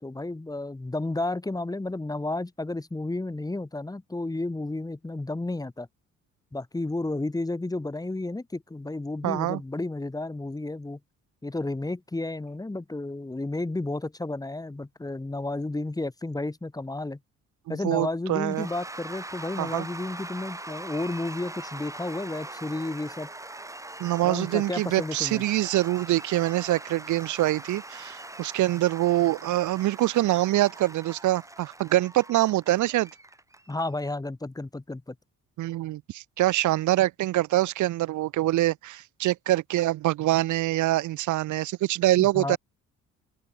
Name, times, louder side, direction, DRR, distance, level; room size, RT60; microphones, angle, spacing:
voice 1, 0.0-5.9 6.5-11.0 11.4-17.2 17.7-23.3 24.2-25.4 33.7-35.1 42.2-42.6, left 2 dB, 10° left, 1.5 m, -32 dB
voice 2, 9.2-9.6 17.7-18.7 19.6-19.9 24.0-33.1 35.6-42.6, right 16 dB, 75° right, 0.7 m, -25 dB
Cheering / Applause / Crowd, 18.5-34.1, right 2 dB, 10° right, 1.6 m, -42 dB
open air
cardioid pair, 90°, 30 cm